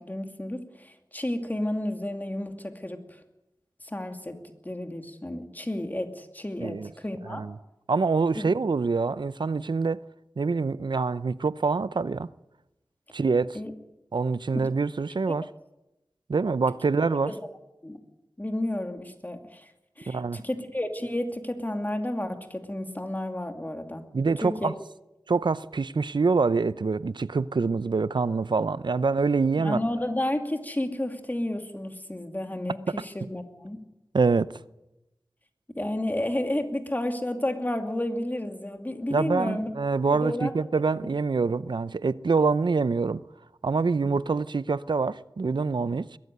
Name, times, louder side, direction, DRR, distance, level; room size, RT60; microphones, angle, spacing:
voice 1, 0.0-3.0 3.8-7.4 8.3-8.5 13.5-13.7 14.5-14.6 15.3-15.4 17.3-17.4 17.8-18.0 18.4-19.7 20.0-24.1 24.4-24.7 29.6-33.8 35.7-39.7 40.1-40.5 41.0-41.1 44.0-44.2, left 1 dB, 25° left, 2.5 m, -31 dB
voice 2, 7.9-10.0 10.4-12.3 13.1-13.6 14.1-15.5 16.3-17.3 20.1-20.4 24.1-24.7 25.3-29.8 32.9-33.0 34.1-34.5 39.1-43.2 43.6-46.1, right 4 dB, 80° right, 0.6 m, -25 dB
22.0 x 14.0 x 9.3 m
wide cardioid pair, 65°, 8 cm